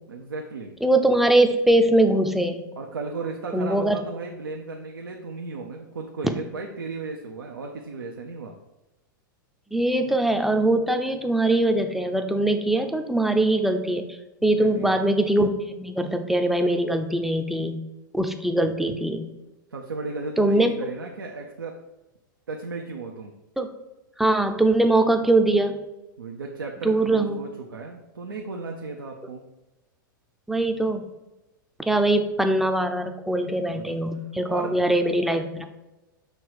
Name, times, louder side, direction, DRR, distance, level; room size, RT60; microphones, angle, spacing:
voice 1, 0.1-0.7 2.8-8.5 14.4-14.9 19.7-21.7 22.5-23.3 26.2-29.4 33.7-34.0 34.5-34.8, right 3 dB, 90° right, 1 dB, 0.7 m, -35 dB
voice 2, 0.8-2.7 3.5-4.0 9.7-14.1 14.4-17.8 18.1-19.3 20.4-20.7 23.6-23.7 24.2-25.9 26.8-27.4 30.5-31.1 31.9-35.6, right 1 dB, ahead, 6 dB, 0.5 m, -22 dB
6.5 x 3.1 x 4.7 m, 1.0 s
hypercardioid pair, 105°, 11 cm